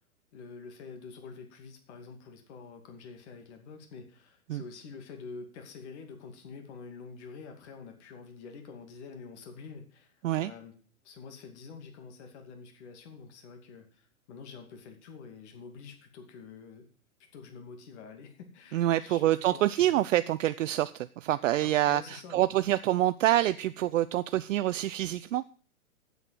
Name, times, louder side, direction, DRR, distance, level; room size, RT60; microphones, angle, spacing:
voice 1, 0.3-10.7 11.0-16.9 17.3-20.0 21.6-22.5, left 5 dB, 50° left, 5 dB, 2.4 m, -47 dB
voice 2, 18.7-25.4, right 14 dB, 60° right, 13 dB, 0.5 m, -26 dB
8.0 x 7.9 x 7.5 m, 0.41 s
hypercardioid pair, 135°, 43 cm